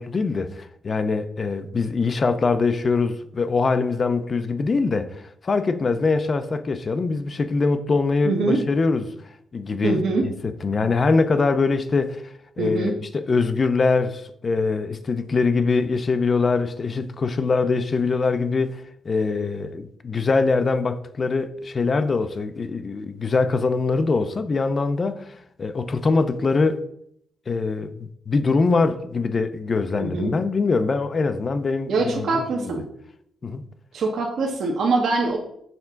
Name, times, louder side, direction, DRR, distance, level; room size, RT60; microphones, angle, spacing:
voice 1, 0.0-9.1 9.5-26.8 27.5-32.7 33.4-33.6, left 4 dB, 25° left, 0.4 m, -23 dB
voice 2, 8.2-8.6 9.8-10.2 12.6-12.9 30.0-30.3 31.9-32.8 33.9-35.4, right 3 dB, 55° right, 1.0 m, -23 dB
6.6 x 3.5 x 5.7 m
cardioid pair, 175°, 0 cm